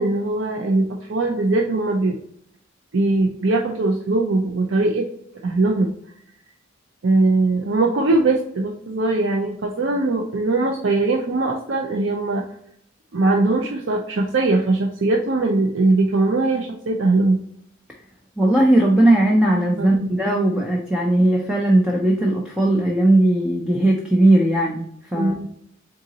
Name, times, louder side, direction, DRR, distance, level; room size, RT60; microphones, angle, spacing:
voice 1, 0.0-2.2 2.9-5.0 5.4-5.9 7.0-12.4 13.1-17.4 19.8-20.2 25.1-25.5, right 2 dB, 65° right, 1 dB, 0.5 m, -20 dB
voice 2, 18.4-25.3, right 1 dB, 5° right, -2 dB, 0.4 m, -18 dB
3.9 x 3.7 x 2.8 m, 0.69 s
head